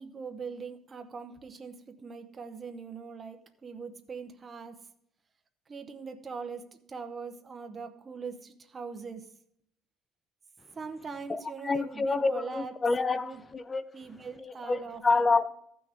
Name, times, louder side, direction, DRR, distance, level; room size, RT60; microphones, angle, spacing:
voice 1, 0.0-4.8 5.7-9.3 10.7-12.7 13.1-13.4 13.9-15.3, right 5 dB, 25° right, 0.8 m, -41 dB
voice 2, 11.3-13.8 14.4-15.5, left 3 dB, 20° left, 0.5 m, -28 dB
14.0 x 6.2 x 3.5 m
cardioid pair, 160°, 0 cm